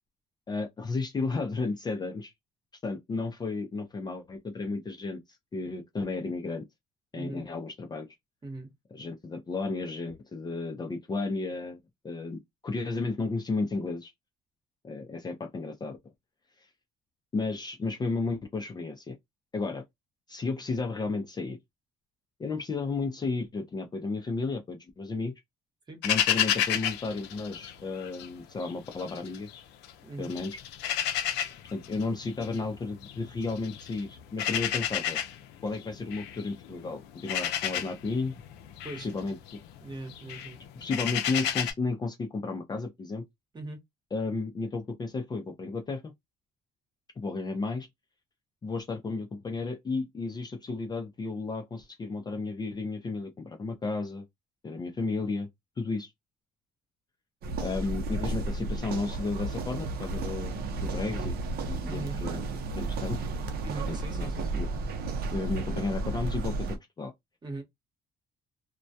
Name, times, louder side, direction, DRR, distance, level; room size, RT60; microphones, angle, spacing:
voice 1, 0.5-2.3 2.8-5.2 5.5-6.6 7.1-8.1 8.9-11.8 12.0-14.1 14.8-16.0 16.6-16.7 17.3-19.2 19.5-19.8 20.3-21.6 22.4-25.3 26.0-29.5 30.2-30.6 31.7-35.2 35.6-38.4 39.0-39.4 40.8-43.2 44.1-46.1 47.2-47.9 48.6-54.2 54.6-55.5 55.8-56.1 57.6-61.3 61.6-62.4 62.7-63.3 63.9-64.7 65.3-66.7 67.0-67.1, left 3 dB, 25° left, 0.5 m, -33 dB
voice 2, 7.1-7.5 8.4-8.7 25.9-26.0 30.0-30.3 38.8-39.1 39.8-40.6 43.5-43.8 61.9-62.2 63.6-64.5 67.4-67.6, right 2 dB, 25° right, 1.0 m, -40 dB
sound 1, 26.0-28.3 28.6-29.9 30.2-41.7, left 10 dB, 85° left, 0.5 m, -32 dB
sound 2, 57.4-66.8, right 3 dB, 65° right, 0.6 m, -33 dB
2.2 x 2.1 x 2.6 m
cardioid pair, 110°, 17 cm